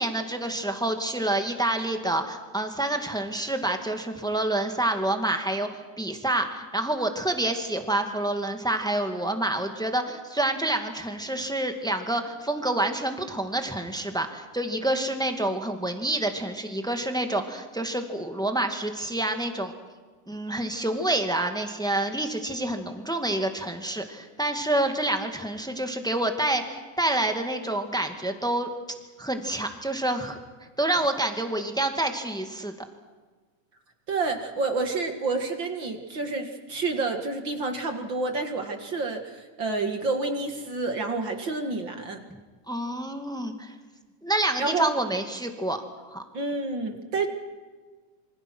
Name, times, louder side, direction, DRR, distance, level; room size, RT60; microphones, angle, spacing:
voice 1, 0.0-19.7 20.3-28.7 29.2-30.4 30.8-32.7 42.3-42.4 42.7-43.7 44.2-46.2, right 1 dB, ahead, 6 dB, 1.3 m, -28 dB
voice 2, 34.1-42.2 44.6-44.9 46.3-47.3, right 3 dB, 40° right, 5 dB, 2.2 m, -29 dB
27.5 x 25.5 x 6.2 m, 1.4 s
omnidirectional pair, 3.7 m